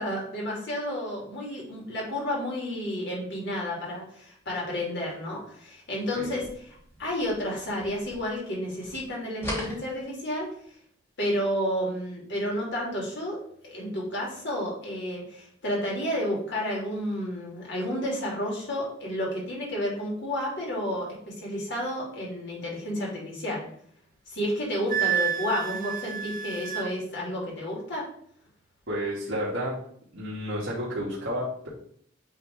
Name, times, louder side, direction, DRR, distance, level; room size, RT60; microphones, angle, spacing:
voice 1, 0.0-6.4 7.0-10.5 11.2-13.4 13.6-23.6 24.3-28.0, equal, 60° left, -3 dB, 2.7 m, -31 dB
sound 1, 6.3-8.5 8.8-10.6, equal, 10° left, 1.9 m, -40 dB
Wind instrument woodwind instrument, 24.9-26.9, right 9 dB, 45° right, 0.6 m, -29 dB
voice 2, 28.9-29.8 30.1-31.7, equal, 60° right, -8 dB, 2.1 m, -31 dB
8.5 x 3.7 x 3.5 m, 0.63 s
head